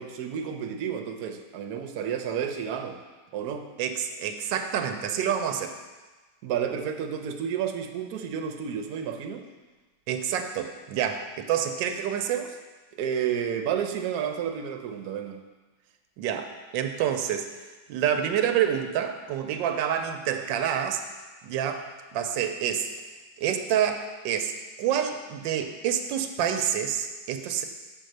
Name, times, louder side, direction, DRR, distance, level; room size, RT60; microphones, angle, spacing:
voice 1, 0.0-3.0 3.3-3.6 6.4-9.4 13.0-15.4, right 8 dB, 65° right, 5 dB, 1.1 m, -31 dB
voice 2, 3.8-5.7 10.1-12.6 16.2-17.5 17.9-21.0 21.4-21.9 22.1-22.9 23.4-24.5 24.8-27.7, right 9 dB, 85° right, 6 dB, 1.3 m, -27 dB
6.6 x 4.5 x 6.5 m, 1.3 s
omnidirectional pair, 2.0 m